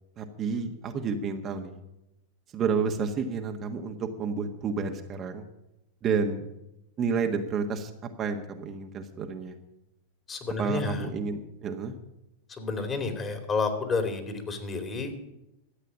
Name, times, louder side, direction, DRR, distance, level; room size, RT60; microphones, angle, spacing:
voice 1, 0.2-1.8 2.5-5.5 6.0-6.5 7.0-7.9 8.2-9.6 10.6-11.9, right 5 dB, 35° right, 4 dB, 1.4 m, -30 dB
voice 2, 10.3-11.1 12.6-15.1, left 4 dB, 25° left, 6 dB, 2.8 m, -30 dB
13.0 x 8.3 x 8.6 m, 0.88 s
hypercardioid pair, 100°, 0 cm